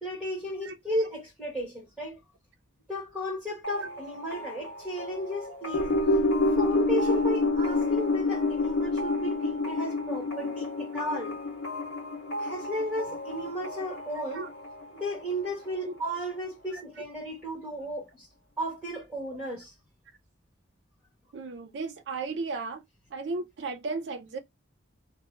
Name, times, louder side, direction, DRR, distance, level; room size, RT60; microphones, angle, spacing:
voice 1, 0.0-2.2 2.9-5.9 6.6-11.4 12.4-14.4 15.0-18.3 18.6-19.7, equal, 5° right, 1.2 m, -34 dB
sound 1, 3.6-17.1, equal, 60° left, 1.1 m, -40 dB
sound 2, 5.7-14.2 14.5-14.6, left 2 dB, 90° left, 0.4 m, -27 dB
voice 2, 21.3-22.8 23.1-24.4, right 3 dB, 65° right, 0.4 m, -35 dB
2.1 x 2.1 x 3.0 m
head